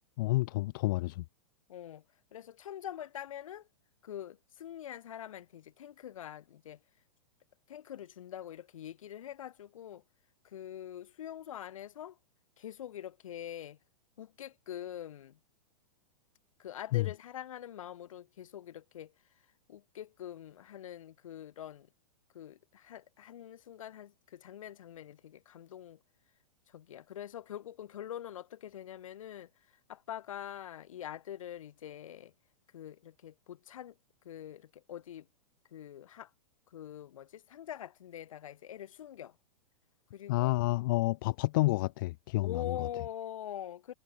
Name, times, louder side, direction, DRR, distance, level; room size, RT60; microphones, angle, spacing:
voice 1, 0.2-1.2 16.9-17.0 40.3-42.9, left 20 dB, 35° left, 1.4 m, -29 dB
voice 2, 1.7-2.0 2.3-3.7 4.0-6.8 7.7-10.0 10.4-12.2 12.6-13.8 14.2-15.4 16.6-19.1 19.7-21.9 22.3-26.0 26.7-29.5 29.9-32.3 32.7-33.9 34.3-35.3 35.7-36.3 36.7-39.4 40.1-40.5 42.4-43.9, left 10 dB, 70° left, 3.6 m, -44 dB
supercardioid pair, 170°, 18 cm